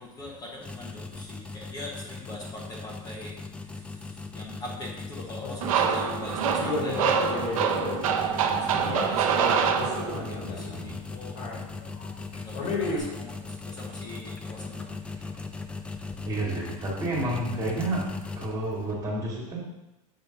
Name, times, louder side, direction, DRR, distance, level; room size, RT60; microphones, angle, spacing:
voice 1, 0.0-7.6 8.4-11.6 12.4-15.0, left 1 dB, 20° left, -3 dB, 1.0 m, -42 dB
sound 1, 0.6-18.9, left 4 dB, 5° left, 0.3 m, -39 dB
sound 2, 5.4-13.0, left 3 dB, 50° left, 1.9 m, -34 dB
sound 3, 5.6-10.4, right 7 dB, 80° right, 0.8 m, -25 dB
voice 2, 8.7-9.0 15.2-15.3 16.3-18.1 18.3-19.6, right 1 dB, 20° right, -3 dB, 1.9 m, -30 dB
7.0 x 3.2 x 5.7 m, 0.95 s
supercardioid pair, 140°, 17 cm